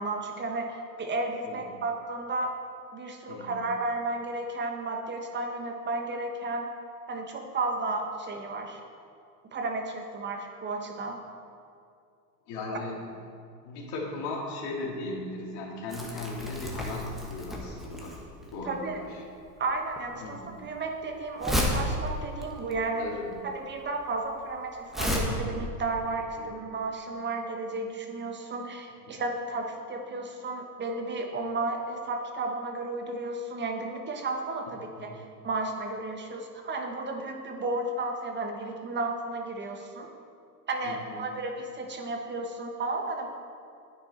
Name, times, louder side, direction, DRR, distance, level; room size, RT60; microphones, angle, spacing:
voice 1, 0.0-2.5 2.9-6.7 7.1-8.8 9.5-11.2 18.6-19.0 19.6-23.1 23.4-40.1 40.7-43.3, right 2 dB, 20° right, 4 dB, 1.0 m, -33 dB
voice 2, 12.5-13.0 13.6-18.1 18.5-19.1 20.2-20.6 23.0-23.3 35.0-35.1 40.8-41.3, left 2 dB, 55° left, -2 dB, 2.7 m, -37 dB
Crumpling crinkling, 15.9-25.2, equal, ahead, 1.3 m, -33 dB
9.8 x 9.4 x 4.2 m, 2.4 s
supercardioid pair, 120°, 49 cm